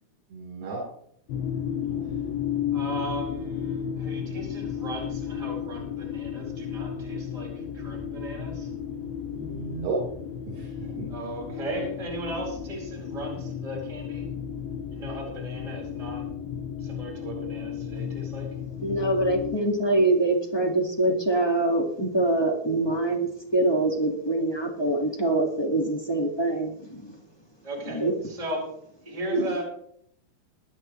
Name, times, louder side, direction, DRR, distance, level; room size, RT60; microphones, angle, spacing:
voice 1, 0.3-0.8 1.9-2.0 9.3-10.0 10.5-11.1 29.3-29.5, right 3 dB, 80° right, -4 dB, 5.9 m, -31 dB
sound 1, 1.3-19.6, left 8 dB, 80° left, 2.9 m, -33 dB
voice 2, 2.7-8.7 11.1-14.3 14.9-16.2 16.8-18.5 27.6-28.7 29.0-29.6, right 1 dB, 10° right, -3 dB, 4.3 m, -37 dB
voice 3, 18.8-27.1 27.9-28.1, right 2 dB, 35° left, -1 dB, 0.4 m, -24 dB
22.5 x 10.5 x 3.2 m, 0.68 s
omnidirectional pair, 4.4 m